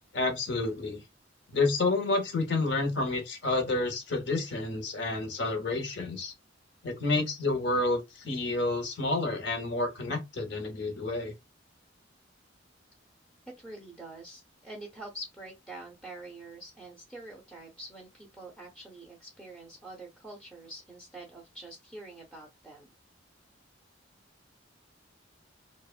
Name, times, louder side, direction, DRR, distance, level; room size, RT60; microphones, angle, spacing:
voice 1, 0.1-1.0 1.5-6.3 6.8-11.3, left 2 dB, 65° left, 0.8 m, -29 dB
voice 2, 13.5-22.9, right 2 dB, 5° left, 0.5 m, -46 dB
2.8 x 2.1 x 2.4 m
head